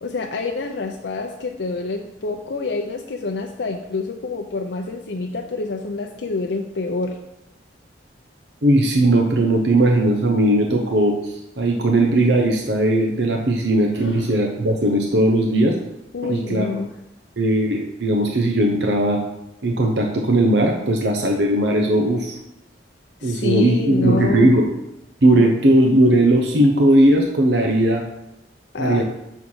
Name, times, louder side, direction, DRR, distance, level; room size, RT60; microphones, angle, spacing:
voice 1, 0.0-7.2 14.0-14.4 16.1-16.9 23.2-24.6 28.7-29.0, left 3 dB, 75° left, 3 dB, 0.6 m, -27 dB
voice 2, 8.6-15.8 16.2-16.7 17.4-19.2 19.6-22.4 23.2-24.7 25.2-28.0 28.8-29.0, right 1 dB, 70° right, 2 dB, 0.8 m, -18 dB
6.3 x 4.6 x 5.5 m, 0.87 s
head